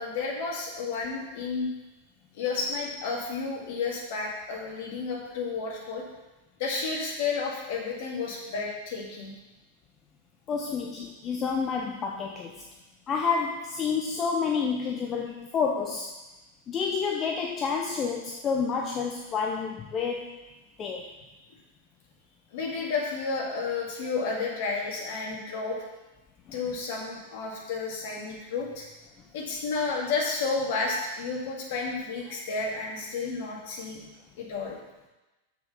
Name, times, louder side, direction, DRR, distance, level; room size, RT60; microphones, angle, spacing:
voice 1, 0.0-1.7 2.4-6.0 6.6-9.3 22.5-25.8 26.5-28.8 29.3-34.0 34.4-34.8, left 4 dB, 50° left, -1 dB, 2.1 m, -31 dB
voice 2, 10.5-12.6 13.1-16.1 16.7-20.5 20.8-21.1, left 5 dB, 25° left, 1 dB, 0.7 m, -29 dB
6.8 x 6.0 x 5.6 m, 1.1 s
figure-of-eight pair, 90°, 0 cm